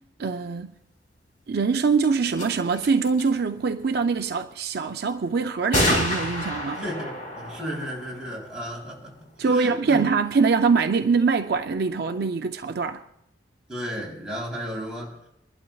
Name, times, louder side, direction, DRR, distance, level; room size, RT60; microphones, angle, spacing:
voice 1, 0.2-0.7 1.5-6.8 9.4-13.0, right 5 dB, 60° right, 0.5 m, -23 dB
sound 1, 2.0-2.1 2.3-2.5 2.7-3.3 5.7-9.1, equal, 50° left, 4.6 m, -28 dB
voice 2, 6.8-10.0 13.7-15.2, equal, 5° right, 3.5 m, -34 dB
26.0 x 12.0 x 2.3 m
head